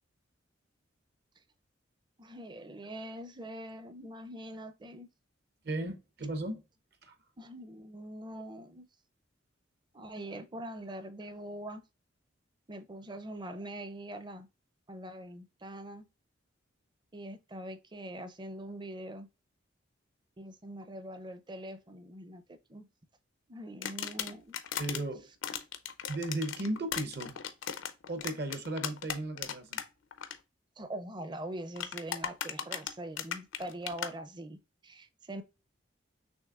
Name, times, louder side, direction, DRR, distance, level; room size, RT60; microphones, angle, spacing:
voice 1, 2.2-5.1 7.4-8.9 9.9-11.8 12.7-14.5 14.9-16.1 17.1-19.3 20.4-22.4 22.7-22.9 23.5-24.6 30.8-34.6 34.8-35.4, right 1 dB, 25° right, 0.5 m, -43 dB
voice 2, 5.6-6.6 7.0-7.1 24.8-25.3 26.1-27.4 28.1-29.8, right 1 dB, 55° right, 0.9 m, -35 dB
sound 1, 23.8-25.0 25.4-29.8 30.1-30.3 31.8-34.1, left 9 dB, 85° left, 0.6 m, -37 dB
6.3 x 2.9 x 2.4 m
head